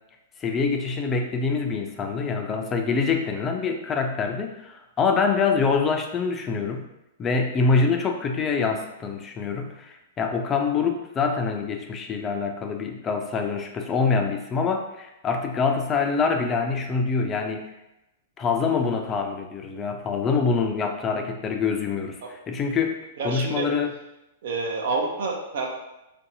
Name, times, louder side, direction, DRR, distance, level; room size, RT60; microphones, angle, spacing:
voice 1, 0.4-6.9 7.2-17.6 18.4-22.2 22.5-23.0 23.2-23.9, left 5 dB, 25° left, 4 dB, 0.3 m, -25 dB
voice 2, 23.2-23.7 24.4-25.7, right 3 dB, 65° right, 0 dB, 0.5 m, -28 dB
2.6 x 2.2 x 2.6 m, 0.92 s
hypercardioid pair, 115°, 0 cm